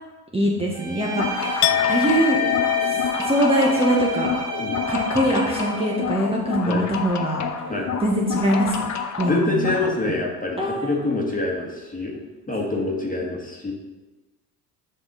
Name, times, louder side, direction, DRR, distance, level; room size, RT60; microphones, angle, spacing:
voice 1, 0.3-2.4 2.9-3.0 3.2-4.3 4.9-7.4 8.0-8.9 9.2-9.7 10.6-10.9, right 1 dB, 10° right, -3 dB, 1.3 m, -22 dB
Bowed string instrument, 0.7-6.1, right 3 dB, 55° right, 2.7 m, -31 dB
sound 1, 1.1-9.9, left 6 dB, 35° left, 0.9 m, -30 dB
Chink clink, 1.6-7.6 7.9-8.3, left 14 dB, 55° left, 0.5 m, -28 dB
voice 2, 9.3-12.2 12.5-13.7, left 2 dB, 15° left, -1 dB, 1.9 m, -26 dB
7.7 x 5.4 x 4.1 m, 1.2 s
hypercardioid pair, 60°, 49 cm